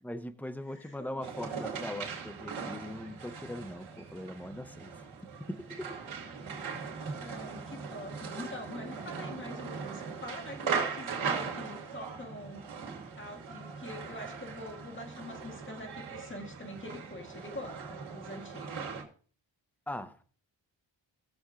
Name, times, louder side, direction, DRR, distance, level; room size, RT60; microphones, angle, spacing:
voice 1, 0.0-4.9 5.4-6.0 19.9-20.2, left 1 dB, 5° left, 0.8 m, -40 dB
voice 2, 0.7-1.2 7.0-12.7 13.1-18.8, left 1 dB, 25° left, 1.9 m, -45 dB
sound 1, 1.2-19.0, right 5 dB, 85° right, 2.5 m, -39 dB
19.5 x 7.1 x 2.5 m
wide cardioid pair, 100°, 46 cm